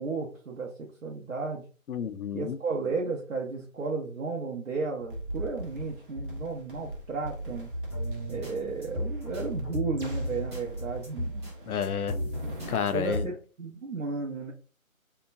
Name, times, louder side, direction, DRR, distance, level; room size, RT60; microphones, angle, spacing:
voice 1, 0.0-1.6 2.3-7.7 8.3-11.5 12.9-14.5, right 4 dB, 70° right, 0.8 m, -33 dB
voice 2, 1.9-2.6 11.7-12.2 12.7-13.3, left 7 dB, 90° left, 0.6 m, -30 dB
sound 1, 5.0-12.8, right 1 dB, 40° right, 0.7 m, -40 dB
sound 2, 7.7-13.3, equal, 20° right, 1.1 m, -35 dB
2.8 x 2.2 x 2.6 m
figure-of-eight pair, 160°, 42 cm